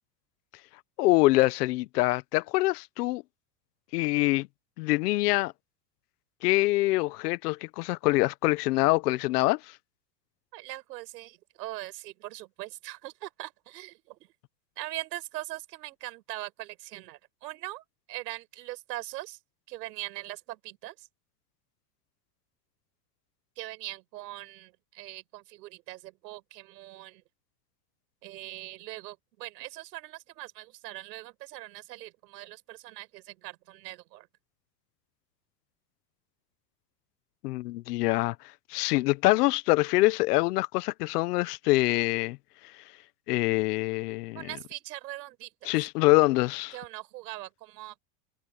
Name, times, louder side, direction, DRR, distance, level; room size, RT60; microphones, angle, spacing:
voice 1, 1.0-3.2 3.9-4.5 4.8-5.5 6.4-9.6 37.4-38.3 38.7-42.4 43.3-44.5 45.6-46.7, left 20 dB, 65° left, 1.1 m, -25 dB
voice 2, 10.5-14.2 14.8-19.4 19.7-21.1 23.6-27.2 28.2-34.3 44.4-45.7 46.7-48.0, right 17 dB, 75° right, 5.4 m, -41 dB
supercardioid pair, 150°, 50 cm